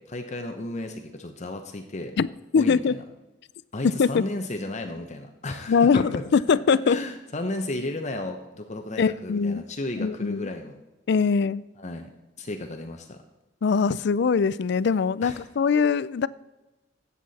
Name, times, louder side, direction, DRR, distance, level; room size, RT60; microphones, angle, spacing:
voice 1, 0.1-2.1 2.5-3.0 3.7-6.2 6.9-10.8 11.8-12.1 12.4-13.2 15.2-15.4, left 2 dB, 40° left, 5 dB, 0.9 m, -33 dB
voice 2, 2.5-2.9 3.8-4.2 5.7-7.0 9.0-9.6 10.0-10.5 11.1-11.6 13.6-16.3, left 5 dB, 65° left, 19 dB, 0.4 m, -22 dB
14.0 x 8.4 x 4.1 m, 1.0 s
head